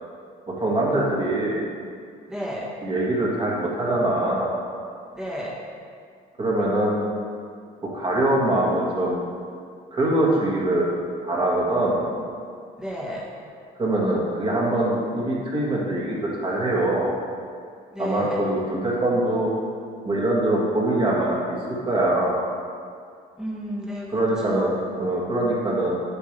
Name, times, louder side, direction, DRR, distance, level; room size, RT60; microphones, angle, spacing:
voice 1, 0.5-1.6 2.8-4.5 6.4-7.0 7.8-9.2 9.9-11.0 11.2-12.0 13.8-17.1 18.0-19.5 20.0-22.3 24.1-25.9, right 1 dB, 30° right, -4 dB, 2.0 m, -23 dB
voice 2, 2.3-2.7 5.1-5.6 12.8-13.3 17.9-18.4 23.4-24.7, equal, 5° right, -3 dB, 1.5 m, -32 dB
8.0 x 6.8 x 3.4 m, 2.3 s
cardioid pair, 110°, 17 cm